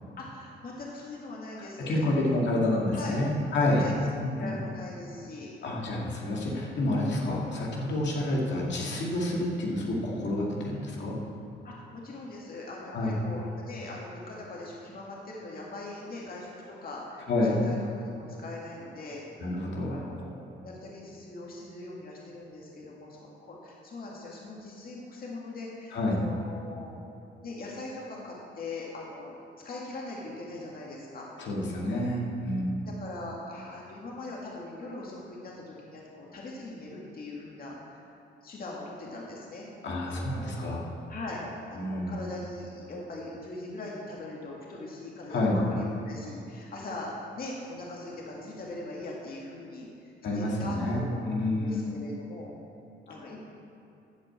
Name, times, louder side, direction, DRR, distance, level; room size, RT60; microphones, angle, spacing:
voice 1, 0.2-2.6 2.9-3.2 3.7-3.9 4.3-5.5 11.6-19.2 19.9-26.9 27.4-29.3 29.6-31.3 32.8-37.8 38.4-39.7 40.0-41.4 41.7-47.1 47.4-52.5 53.1-53.4, left 2 dB, 50° left, -3 dB, 2.2 m, -41 dB
voice 2, 1.6-3.8 4.1-4.6 5.6-11.1 12.9-13.2 17.3-17.6 19.4-20.1 25.9-26.2 31.4-32.8 39.8-40.8 41.7-42.2 45.3-45.6 50.2-51.9 53.2-53.3, left 1 dB, 65° left, -3 dB, 2.3 m, -29 dB
12.0 x 5.3 x 8.5 m, 2.8 s
cardioid pair, 90°, 20 cm